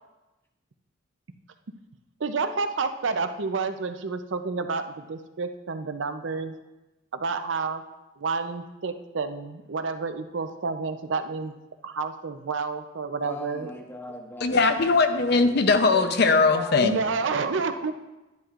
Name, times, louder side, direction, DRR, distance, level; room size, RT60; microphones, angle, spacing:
voice 1, 2.2-6.5 7.1-7.8 8.2-11.5 11.8-13.7 16.8-17.9, right 4 dB, 90° right, 8 dB, 0.6 m, -29 dB
voice 2, 13.2-14.5 15.9-17.6, left 1 dB, 10° left, 1 dB, 1.1 m, -39 dB
voice 3, 14.4-17.1, left 4 dB, 60° left, 8 dB, 0.6 m, -20 dB
10.5 x 10.5 x 2.5 m, 1.0 s
head